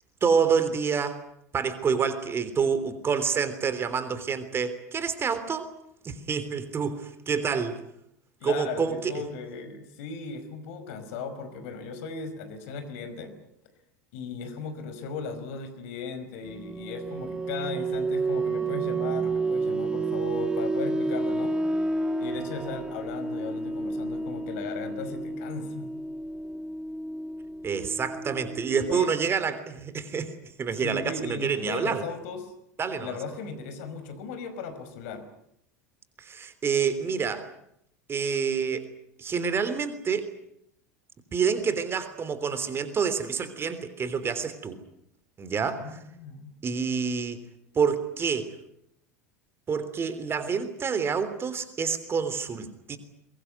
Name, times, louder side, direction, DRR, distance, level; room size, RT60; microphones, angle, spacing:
voice 1, 0.2-1.2 1.5-5.7 6.0-7.8 8.4-9.1 27.6-30.3 30.6-32.0 32.8-33.2 36.2-37.5 38.1-38.9 39.2-40.3 41.3-44.8 45.4-46.0 46.6-47.4 47.7-48.5 49.7-53.0, right 6 dB, 25° right, 12 dB, 3.4 m, -28 dB
voice 2, 8.4-13.3 14.1-21.5 22.2-25.9 28.9-29.1 30.8-32.5 33.0-35.2 45.6-46.6, left 5 dB, 60° left, 10 dB, 5.2 m, -37 dB
sound 1, 16.4-29.0, right 3 dB, 10° right, 1.7 m, -30 dB
23.0 x 22.0 x 9.5 m, 0.76 s
figure-of-eight pair, 80°, 9 cm